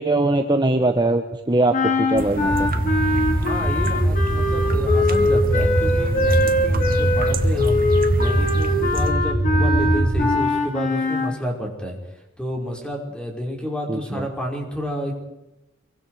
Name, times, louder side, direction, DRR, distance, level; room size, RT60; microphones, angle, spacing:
voice 1, 0.0-2.7 13.9-14.2, right 2 dB, 20° right, 5 dB, 1.2 m, -21 dB
sound 1, 1.7-11.4, left 1 dB, 40° left, 3.6 m, -22 dB
sound 2, 2.2-9.1, right 2 dB, 45° right, 1.7 m, -32 dB
sound 3, 2.5-10.3, right 1 dB, 25° left, 2.5 m, -22 dB
voice 2, 3.4-12.0 12.4-15.1, equal, 5° left, 0 dB, 5.4 m, -30 dB
25.5 x 24.0 x 5.0 m, 0.94 s
head